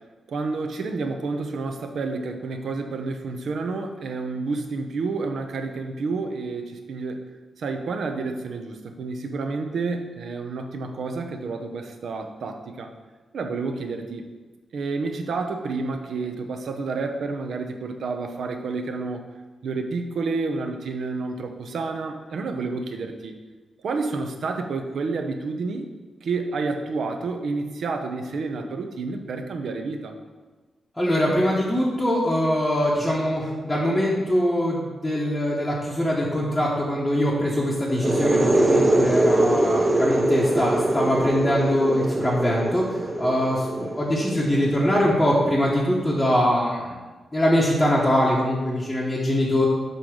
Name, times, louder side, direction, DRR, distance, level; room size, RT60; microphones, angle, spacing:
voice 1, 0.3-7.2 7.6-12.9 13.3-14.3 14.7-19.2 19.6-23.4 23.8-25.9 26.2-30.2, right 3 dB, 65° right, 5 dB, 0.7 m, -29 dB
voice 2, 31.0-47.0 47.3-49.7, equal, 10° left, -6 dB, 0.9 m, -23 dB
sound 1, 37.9-45.4, right 1 dB, 20° right, 0.6 m, -23 dB
6.7 x 3.8 x 6.1 m, 1.3 s
wide cardioid pair, 160°, 0 cm